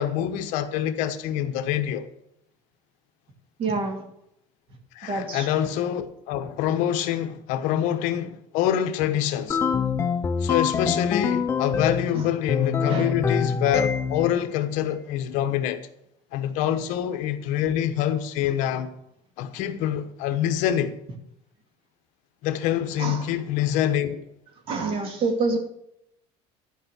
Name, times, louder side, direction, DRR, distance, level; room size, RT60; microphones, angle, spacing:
voice 1, 0.0-2.1 4.9-9.6 10.4-15.8 16.3-18.9 19.4-20.9 22.4-24.2, left 10 dB, 65° left, 1.1 m, -25 dB
voice 2, 3.6-4.0 5.0-5.5 12.1-12.2 12.9-13.1 23.0-23.3 24.7-25.6, right 3 dB, 40° right, 2.3 m, -27 dB
sound 1, 9.5-12.1 12.5-14.3, left 6 dB, 20° left, 0.5 m, -25 dB
12.0 x 5.6 x 8.0 m
cardioid pair, 155°, 14 cm